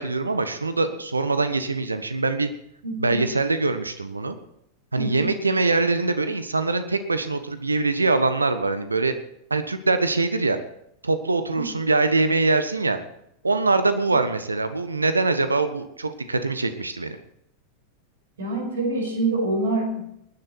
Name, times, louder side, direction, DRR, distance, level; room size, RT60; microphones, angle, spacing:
voice 1, 0.0-2.5 3.0-4.4 4.9-9.1 9.5-10.6 11.0-13.0 13.4-17.2, right 3 dB, 80° right, 10 dB, 1.3 m, -23 dB
voice 2, 2.8-3.2 5.0-5.3 11.6-11.7 18.4-20.0, right 2 dB, 65° right, 2 dB, 5.7 m, -26 dB
19.5 x 10.5 x 4.6 m, 0.77 s
figure-of-eight pair, 90°, 0 cm